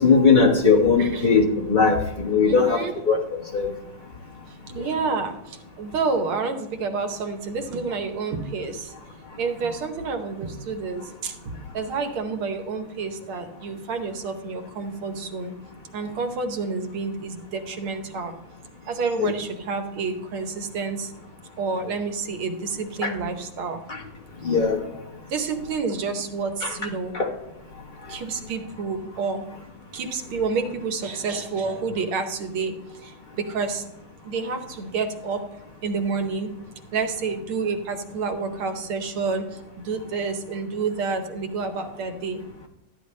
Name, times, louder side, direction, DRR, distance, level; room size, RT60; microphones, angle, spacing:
voice 1, 0.0-2.8 3.1-3.2 3.5-3.7 4.8-4.9 19.2-19.3 23.0-23.1 23.9-24.0 24.4-24.8 26.6-26.7 27.1-27.3, left 5 dB, 30° left, -1 dB, 0.9 m, -19 dB
voice 2, 2.4-3.0 4.7-8.9 9.4-15.5 15.9-18.3 18.9-21.1 21.6-23.8 25.3-27.2 28.1-29.5 29.9-32.7 33.0-33.8 34.2-35.5 35.8-36.6 36.9-42.4, right 4 dB, 85° right, 7 dB, 1.8 m, -29 dB
13.0 x 9.6 x 3.2 m, 0.87 s
omnidirectional pair, 2.3 m